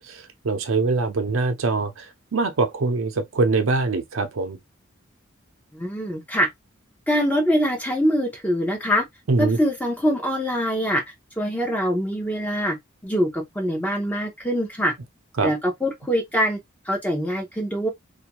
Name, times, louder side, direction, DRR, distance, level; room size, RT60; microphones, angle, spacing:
voice 1, 0.0-2.1 2.3-4.6 9.3-9.6 15.4-15.5, right 3 dB, 85° right, 0.6 m, -23 dB
voice 2, 5.7-6.5 7.1-9.0 9.4-11.0 11.4-12.8 13.0-14.9 15.4-16.6 16.9-17.9, equal, 5° left, 0.7 m, -23 dB
2.5 x 2.2 x 2.8 m
head